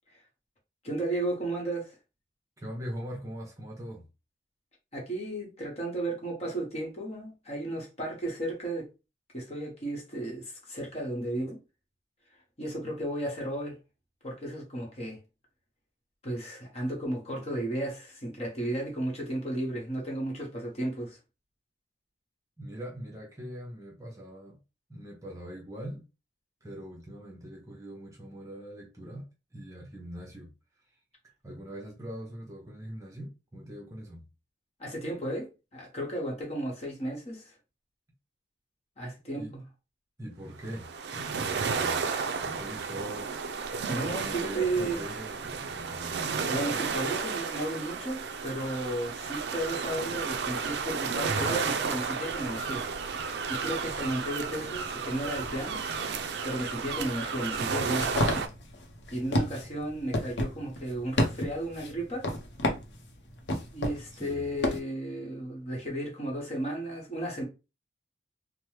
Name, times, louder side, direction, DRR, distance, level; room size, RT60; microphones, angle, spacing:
voice 1, 0.8-1.9 4.9-8.9 9.3-11.6 12.6-13.8 14.2-15.2 16.2-21.2 34.8-37.5 39.0-39.6 43.7-45.0 46.5-52.8 53.5-55.8 56.4-58.1 59.1-62.3 63.7-67.4, right 1 dB, 35° left, 1.1 m, -34 dB
voice 2, 2.6-4.0 22.6-24.6 24.9-26.1 26.6-29.2 29.5-30.5 31.4-34.2 39.3-39.5 40.2-42.0 42.4-43.3 44.2-46.2 64.2-64.5, equal, 15° right, 0.6 m, -41 dB
sound 1, 40.6-58.5, right 5 dB, 65° right, 0.4 m, -33 dB
sound 2, 57.5-64.8, left 1 dB, 70° left, 0.7 m, -31 dB
3.0 x 2.1 x 3.2 m
head